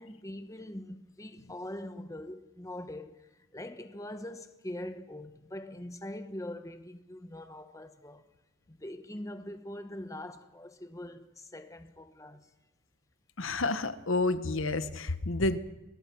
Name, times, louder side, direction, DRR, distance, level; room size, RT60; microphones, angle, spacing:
voice 1, 0.0-8.2 8.7-12.5, left 1 dB, 15° left, 1.2 m, -43 dB
voice 2, 13.4-15.6, left 2 dB, 65° left, 1.2 m, -29 dB
28.5 x 22.0 x 6.1 m
head